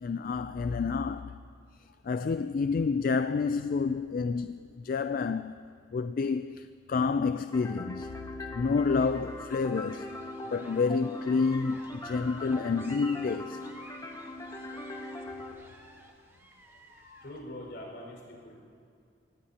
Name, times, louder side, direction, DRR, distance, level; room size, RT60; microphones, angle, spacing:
voice 1, 0.0-1.4 2.0-5.6 5.9-8.1 8.5-10.1 10.5-13.6 17.0-17.2, left 4 dB, 50° left, 0.3 m, -29 dB
sound 1, 7.5-15.5, left 2 dB, 20° left, 1.2 m, -41 dB
sound 2, 8.8-17.4, right 1 dB, 15° right, 1.4 m, -53 dB
voice 2, 17.2-18.6, left 1 dB, 70° left, 5.2 m, -43 dB
25.0 x 18.5 x 2.9 m
head